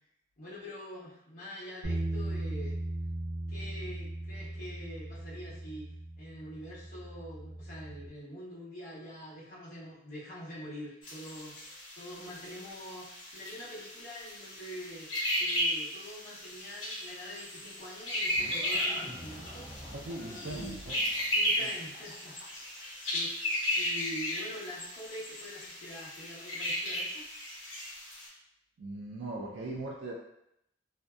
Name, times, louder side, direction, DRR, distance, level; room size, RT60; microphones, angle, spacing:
voice 1, 0.4-2.8 3.5-11.6 11.9-13.1 13.3-15.1 15.4-19.7 20.3-20.8 21.3-23.4 23.7-27.2, equal, 50° left, -10 dB, 0.9 m, -45 dB
sound 1, 1.8-8.1, right 1 dB, 85° right, 0.8 m, -38 dB
sound 2, 11.0-28.3, equal, 85° left, 1.0 m, -35 dB
Livestock farm animals working animals, 17.8-22.8, equal, ahead, 0.6 m, -47 dB
voice 2, 19.9-21.1 21.6-21.7 28.8-30.1, right 2 dB, 65° right, -3 dB, 0.4 m, -40 dB
2.6 x 2.1 x 2.3 m, 0.77 s
head